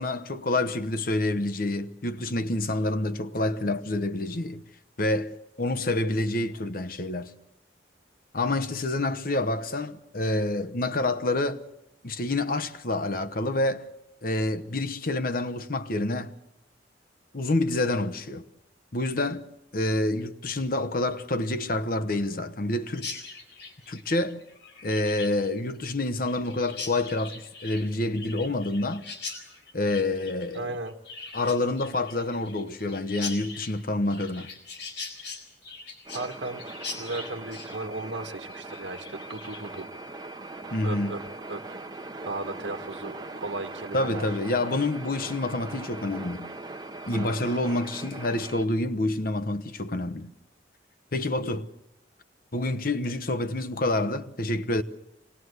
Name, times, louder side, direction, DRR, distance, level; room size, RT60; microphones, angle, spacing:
voice 1, 0.0-4.6 5.0-7.3 8.3-11.6 12.0-13.9 14.2-16.3 17.3-18.4 18.9-19.4 19.7-23.2 23.9-24.4 24.8-29.0 29.7-30.6 31.3-34.5 40.7-41.1 43.9-46.5 47.1-50.3 51.1-51.7 52.5-54.8, left 2 dB, 50° left, 1.1 m, -28 dB
Chirp tweet, 22.9-39.8, left 4 dB, 75° left, 5.6 m, -41 dB
voice 2, 30.5-31.0 36.1-36.7 37.0-40.1 40.8-41.2 41.5-41.8 42.3-44.4 47.1-47.6, right 2 dB, 85° right, 1.3 m, -36 dB
sound 1, 36.1-48.7, right 2 dB, 20° right, 0.9 m, -40 dB
26.0 x 19.5 x 8.1 m
head